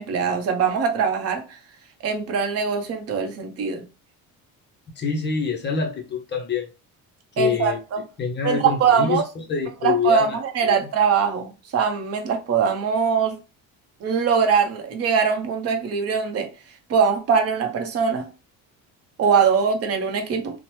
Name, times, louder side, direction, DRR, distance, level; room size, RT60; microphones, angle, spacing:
voice 1, 0.0-1.6 2.0-3.8 7.4-8.0 8.4-9.2 9.8-13.4 14.0-16.5 16.9-18.3 19.2-20.6, right 6 dB, 40° right, 0.7 m, -22 dB
voice 2, 5.0-6.7 7.3-7.8 8.2-10.4 10.7-10.8, left 5 dB, 30° left, 0.5 m, -25 dB
2.8 x 2.0 x 3.1 m
cardioid pair, 145°, 36 cm